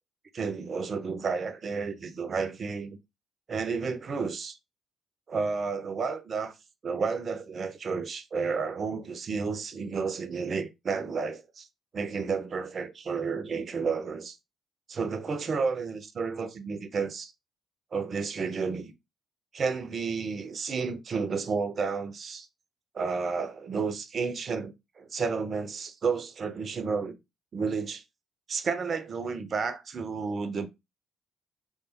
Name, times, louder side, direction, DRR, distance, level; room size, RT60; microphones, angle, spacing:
voice 1, 0.3-3.0 3.5-4.6 5.3-6.5 6.8-11.7 11.9-14.4 14.9-17.3 17.9-18.9 19.5-22.5 22.9-27.2 27.5-28.0 28.5-30.7, right 5 dB, 45° right, 0.4 m, -31 dB
3.1 x 2.1 x 2.8 m
figure-of-eight pair, 45°, 0 cm